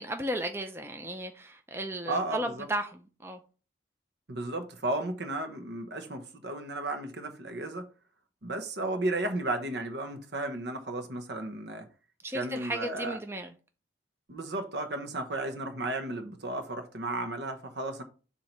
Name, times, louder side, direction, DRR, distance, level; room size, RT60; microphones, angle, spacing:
voice 1, 0.0-3.4 12.2-13.5, right 1 dB, 15° right, 0.5 m, -35 dB
voice 2, 2.1-2.7 4.3-7.9 8.4-11.9 12.3-13.2 14.3-18.0, right 2 dB, 65° right, 1.1 m, -34 dB
7.4 x 2.8 x 5.4 m
head